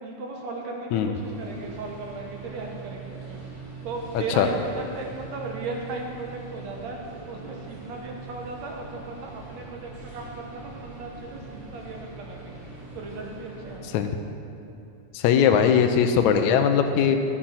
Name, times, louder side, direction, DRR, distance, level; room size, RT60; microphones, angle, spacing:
voice 1, 0.0-3.4 3.8-7.0 7.3-12.5 12.9-14.0, right 3 dB, 65° right, 0 dB, 2.0 m, -36 dB
sound 1, 1.1-13.8, right 4 dB, 85° right, 4.8 m, -42 dB
voice 2, 4.1-4.5 13.9-14.1 15.1-17.2, left 8 dB, 90° left, 6 dB, 1.6 m, -20 dB
13.5 x 7.5 x 5.6 m, 2.7 s
omnidirectional pair, 4.0 m